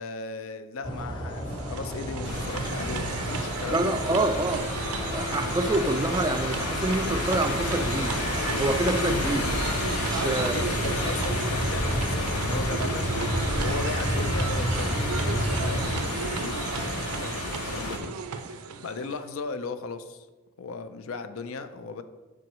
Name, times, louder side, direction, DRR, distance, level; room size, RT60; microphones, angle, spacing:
voice 1, 0.0-3.9 10.3-18.2 18.8-20.3 20.6-22.0, left 4 dB, 65° left, 10 dB, 0.4 m, -37 dB
sound 1, 0.8-16.0, equal, 20° left, 0.9 m, -33 dB
sound 2, 1.2-19.3, right 5 dB, 85° right, 0.5 m, -35 dB
sound 3, 2.2-18.0, left 2 dB, 80° left, 0.9 m, -31 dB
voice 2, 3.7-4.7 5.1-8.2 8.6-9.5 10.0-10.6 16.8-16.9, right 2 dB, 20° right, 8 dB, 0.3 m, -27 dB
7.7 x 5.2 x 3.0 m, 1.2 s
head